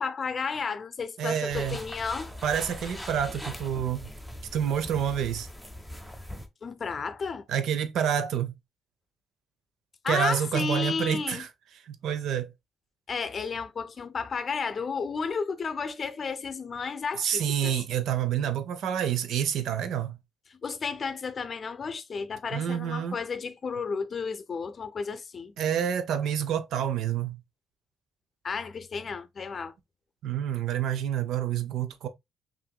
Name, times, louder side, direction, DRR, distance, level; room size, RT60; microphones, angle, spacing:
voice 1, 0.0-2.3 6.6-7.5 10.0-11.4 13.1-17.8 20.5-25.5 28.4-29.7, left 5 dB, 45° left, 0.5 m, -32 dB
voice 2, 1.2-1.8 2.4-4.1 4.5-5.5 7.5-8.5 10.1-11.5 11.9-12.5 17.1-20.2 22.5-23.2 25.6-27.4 30.2-32.1, right 9 dB, 75° right, 0.6 m, -28 dB
sound 1, 1.5-6.5, left 1 dB, ahead, 0.7 m, -41 dB
5.7 x 2.6 x 2.3 m
cardioid pair, 90°, 0 cm